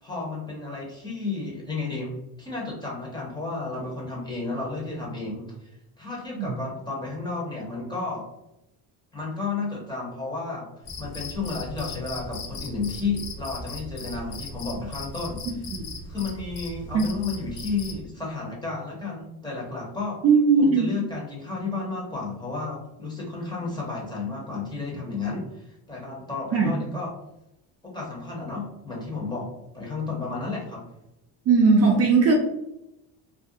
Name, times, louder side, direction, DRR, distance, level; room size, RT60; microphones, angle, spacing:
voice 1, 0.0-2.1 2.4-8.3 9.1-10.7 11.0-15.7 16.1-20.2 20.6-27.1 27.8-30.8, left 3 dB, 10° left, -4 dB, 0.8 m, -32 dB
Cricket, 10.8-18.0, left 2 dB, 55° left, 0.6 m, -38 dB
voice 2, 20.2-20.9 26.5-26.7 31.5-32.3, right 4 dB, 40° right, 0 dB, 0.4 m, -18 dB
2.4 x 2.1 x 2.6 m, 0.86 s
cardioid pair, 130°, 38 cm